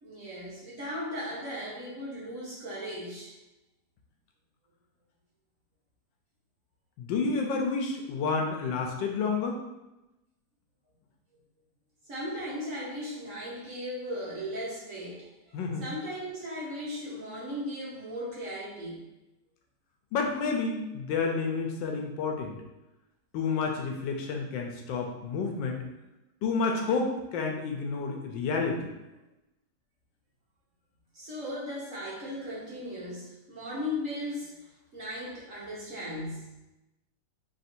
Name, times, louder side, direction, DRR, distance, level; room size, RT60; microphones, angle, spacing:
voice 1, 0.0-3.3 12.1-19.0 31.1-34.6 34.9-36.5, left 1 dB, 50° right, -6 dB, 1.1 m, -37 dB
voice 2, 7.0-9.6 15.5-15.8 20.1-22.6 23.3-25.8 26.4-28.9, left 4 dB, 85° left, 2 dB, 1.3 m, -30 dB
3.4 x 2.6 x 4.2 m, 0.99 s
omnidirectional pair, 2.0 m